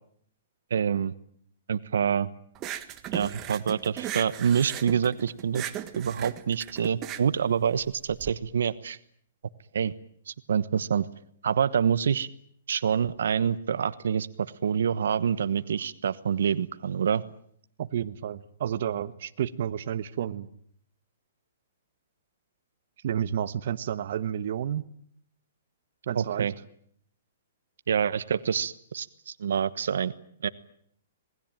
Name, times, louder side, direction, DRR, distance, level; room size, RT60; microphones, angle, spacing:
voice 1, 0.7-1.1 1.7-2.3 3.1-5.7 5.9-9.0 9.7-9.9 10.3-11.1 11.4-12.3 12.7-17.2 26.1-26.5 27.9-30.1 30.4-30.5, right 7 dB, 80° right, 15 dB, 1.2 m, -26 dB
sound 1, 2.5-8.3, right 12 dB, 20° right, 1.5 m, -37 dB
voice 2, 17.8-20.5 23.0-24.8 26.1-26.5, right 9 dB, 55° right, 11 dB, 1.2 m, -30 dB
27.0 x 20.5 x 9.0 m, 0.65 s
hypercardioid pair, 160°, 0 cm